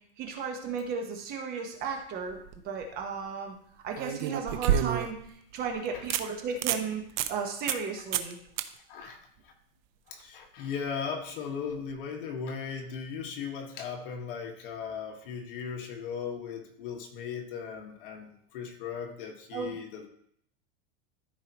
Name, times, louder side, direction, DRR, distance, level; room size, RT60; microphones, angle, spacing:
voice 1, 0.0-8.4 19.5-19.8, right 5 dB, 30° right, 3 dB, 1.1 m, -35 dB
sound 1, 2.2-2.6 4.0-5.3 5.7-5.8 6.1-6.2 6.6-6.8 7.2-7.3 7.7-7.9 8.1-8.3 8.6-8.7 11.8-11.9, right 10 dB, 50° right, 0.6 m, -29 dB
voice 2, 8.9-9.5 10.1-20.1, left 6 dB, 60° left, 2 dB, 1.6 m, -37 dB
13.5 x 4.7 x 3.0 m, 0.67 s
supercardioid pair, 165°, 30 cm